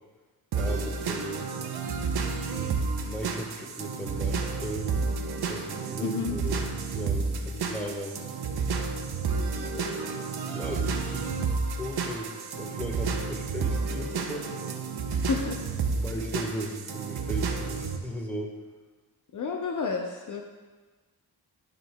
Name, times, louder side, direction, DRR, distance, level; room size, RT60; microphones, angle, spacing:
voice 1, 0.5-1.4 2.5-4.9 5.5-8.2 9.4-11.3 11.7-14.5 15.9-18.5, right 1 dB, 5° left, 0 dB, 1.2 m, -37 dB
sound 1, 0.5-18.0, right 4 dB, 75° right, 0.9 m, -31 dB
voice 2, 6.0-6.4 15.1-15.6 19.3-20.4, left 5 dB, 50° left, 2 dB, 0.6 m, -30 dB
11.5 x 6.5 x 2.2 m, 1.3 s
wide cardioid pair, 120°, 39 cm